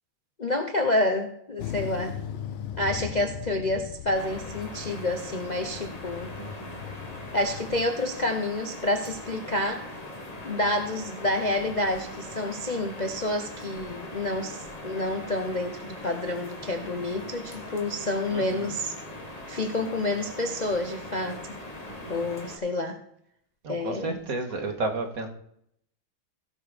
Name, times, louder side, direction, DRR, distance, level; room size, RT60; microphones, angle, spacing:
voice 1, 0.4-2.2 2.8-6.3 7.3-9.9 10.4-14.6 14.8-18.9 19.5-21.5 22.1-23.0 23.7-24.2, left 1 dB, 55° left, 5 dB, 0.4 m, -28 dB
sound 1, 1.6-7.9, left 10 dB, 80° left, 1.7 m, -38 dB
sound 2, 4.1-22.6, left 1 dB, 20° left, 1.4 m, -41 dB
voice 2, 6.4-6.8 18.3-18.8 21.9-22.2 23.6-25.3, right 2 dB, 45° right, 4 dB, 2.1 m, -33 dB
16.5 x 6.1 x 5.1 m, 0.72 s
omnidirectional pair, 2.2 m